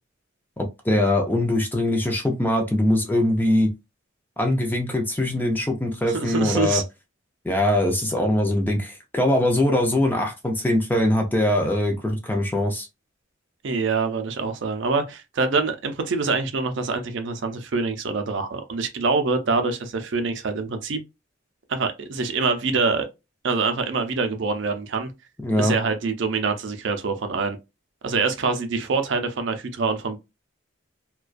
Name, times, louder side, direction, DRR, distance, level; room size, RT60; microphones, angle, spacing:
voice 1, 0.6-3.7 4.4-6.8 7.4-12.9 25.4-25.8, left 1 dB, 10° left, 0.3 m, -22 dB
voice 2, 6.1-6.8 13.6-21.0 21.7-23.1 23.4-25.1 25.6-27.6 28.0-30.2, right 4 dB, 65° right, 0.5 m, -25 dB
2.3 x 2.2 x 2.4 m
head